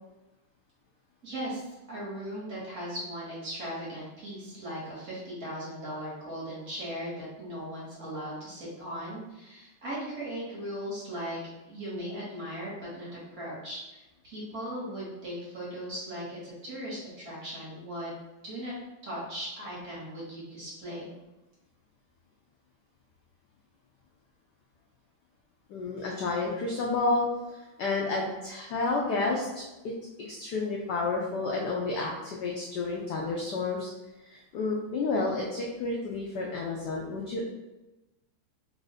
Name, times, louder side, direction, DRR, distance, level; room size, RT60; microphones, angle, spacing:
voice 1, 1.2-11.4 11.7-18.1 18.4-18.7 19.0-21.1, equal, 45° right, -7 dB, 1.6 m, -38 dB
voice 2, 25.7-29.6 30.2-33.9 34.2-37.4, left 3 dB, 80° left, -2 dB, 0.9 m, -30 dB
3.6 x 2.5 x 4.0 m, 1.0 s
omnidirectional pair, 2.4 m